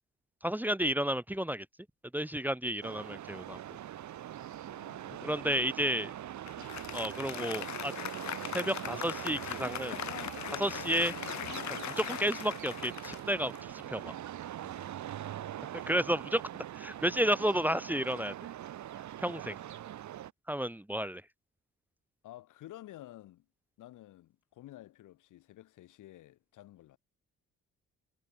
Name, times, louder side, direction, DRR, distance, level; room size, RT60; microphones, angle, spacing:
voice 1, 0.4-1.7 2.1-3.6 5.2-6.1 6.9-7.9 8.5-10.0 10.5-11.2 11.7-14.1 15.9-16.4 16.7-18.3 19.2-19.6 20.5-21.2, equal, 5° right, 1.3 m, -32 dB
sound 1, 2.8-20.3, right 12 dB, 70° right, 2.4 m, -42 dB
voice 2, 4.6-6.0 14.6-14.9 22.2-23.5 23.8-27.0, left 14 dB, 85° left, 5.3 m, -52 dB
Applause, 6.5-14.1, left 12 dB, 65° left, 1.7 m, -40 dB
cardioid pair, 90°, 30 cm